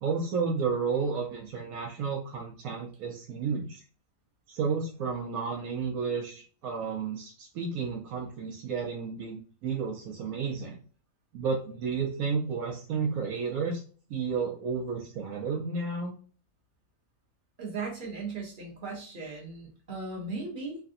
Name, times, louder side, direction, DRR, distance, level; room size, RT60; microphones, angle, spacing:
voice 1, 0.0-3.8 4.5-10.8 11.3-13.8 14.1-16.1, right 5 dB, 80° right, -1 dB, 1.1 m, -32 dB
voice 2, 17.6-20.8, right 3 dB, 40° right, -2 dB, 1.0 m, -37 dB
3.2 x 2.5 x 2.6 m, 0.40 s
omnidirectional pair, 1.5 m